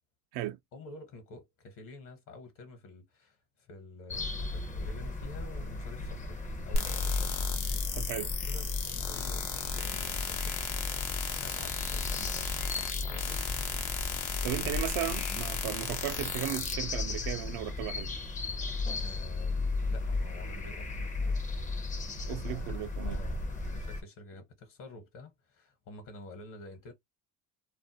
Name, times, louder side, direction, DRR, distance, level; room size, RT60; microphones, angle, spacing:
voice 1, 0.7-7.3 8.2-11.0 11.3-13.4 14.4-14.8 15.6-15.8 19.0-21.4 22.2-22.7 23.0-26.9, left 2 dB, 60° left, 1.1 m, -49 dB
sound 1, 4.1-24.0, left 3 dB, 20° left, 0.5 m, -35 dB
sound 2, 6.7-16.7, left 6 dB, 85° left, 0.8 m, -35 dB
voice 2, 7.9-8.3 14.4-18.1 22.3-23.2, right 13 dB, 70° right, 0.6 m, -36 dB
2.5 x 2.1 x 2.7 m
supercardioid pair, 95°, 35 cm